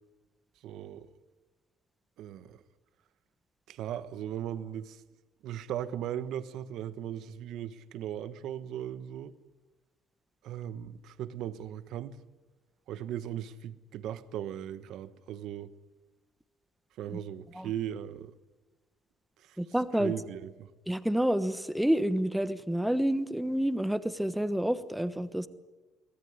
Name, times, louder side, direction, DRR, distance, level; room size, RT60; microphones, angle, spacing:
voice 1, 0.6-1.1 2.2-2.6 3.7-5.0 5.4-9.3 10.4-12.2 12.9-15.7 17.0-18.3 19.4-19.6 19.9-20.7, right 10 dB, 65° right, 1.3 m, -38 dB
voice 2, 19.6-20.1 20.9-25.5, equal, 5° right, 1.2 m, -29 dB
23.5 x 18.5 x 9.5 m
cardioid pair, 145°, 0 cm